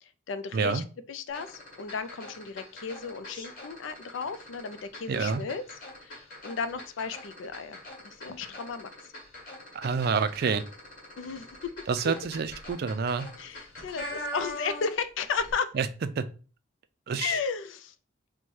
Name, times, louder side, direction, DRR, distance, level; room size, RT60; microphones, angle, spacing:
voice 1, 0.0-5.6 6.0-7.8 8.0-8.9 11.2-11.5 13.4-15.7 17.2-17.9, left 5 dB, 75° left, 12 dB, 0.4 m, -34 dB
voice 2, 0.5-0.8 5.1-5.4 9.7-10.6 11.9-13.3 15.7-15.9 16.2-16.3 17.1-17.3, right 5 dB, 50° right, 12 dB, 0.4 m, -28 dB
sound 1, 1.3-15.1 15.3-15.5, left 1 dB, 45° left, 1.7 m, -43 dB
4.3 x 2.2 x 4.6 m, 0.37 s
head